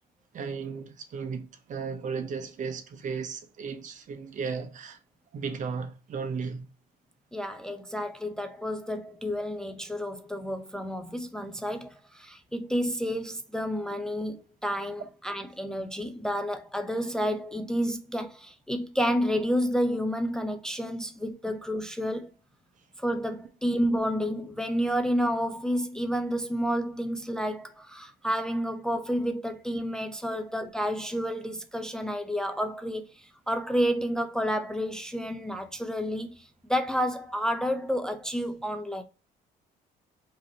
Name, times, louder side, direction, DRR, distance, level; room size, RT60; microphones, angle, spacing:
voice 1, 0.3-5.0 5.3-6.6, right 5 dB, 50° right, 0.9 m, -35 dB
voice 2, 7.3-22.3 23.0-39.0, equal, 5° left, 0.5 m, -30 dB
5.0 x 2.8 x 2.8 m
cardioid pair, 110°, 17 cm